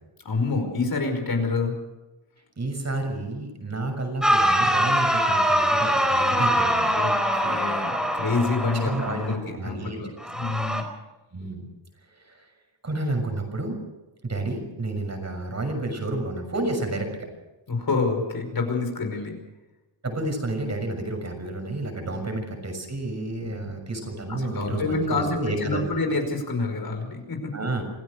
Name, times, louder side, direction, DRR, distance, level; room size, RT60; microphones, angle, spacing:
voice 1, 0.3-1.7 6.9-10.8 17.7-19.4 23.4-23.7 24.3-27.8, left 3 dB, 45° left, 5 dB, 5.3 m, -27 dB
voice 2, 2.6-7.0 8.7-10.5 11.3-11.6 12.2-12.4 12.8-13.8 14.2-17.3 20.0-26.0 27.5-27.8, right 2 dB, 35° right, 5 dB, 6.7 m, -30 dB
sound 1, 4.2-9.3 10.2-10.8, equal, ahead, 4.4 m, -23 dB
27.0 x 16.0 x 6.6 m, 1.1 s
wide cardioid pair, 120°, 48 cm